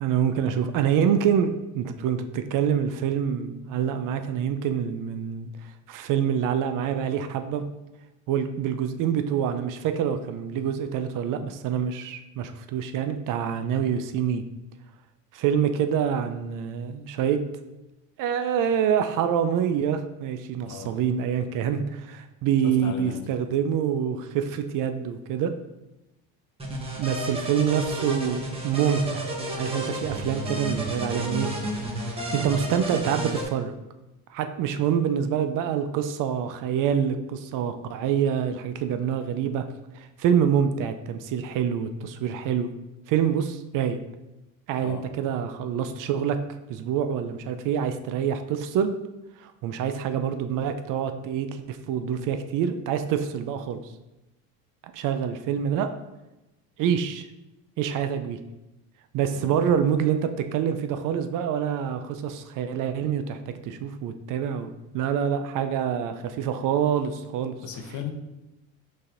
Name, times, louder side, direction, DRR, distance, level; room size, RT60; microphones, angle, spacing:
voice 1, 0.0-5.5 5.9-7.6 8.3-14.4 15.3-17.4 18.2-25.5 27.0-29.3 29.6-31.5 31.9-33.7 34.3-39.6 39.9-42.7 43.1-44.0 44.7-46.4 46.7-49.0 49.4-53.8 54.9-55.9 56.8-57.3 57.8-58.4 59.1-67.5, right 8 dB, 55° right, 8 dB, 0.4 m, -26 dB
voice 2, 20.6-21.0 22.6-23.5 44.8-45.1 59.3-59.6 67.6-68.1, left 7 dB, 45° left, 5 dB, 0.7 m, -37 dB
sound 1, 26.6-33.4, right 1 dB, 15° right, 1.0 m, -31 dB
5.5 x 3.4 x 2.5 m, 0.96 s
supercardioid pair, 90°, 40 cm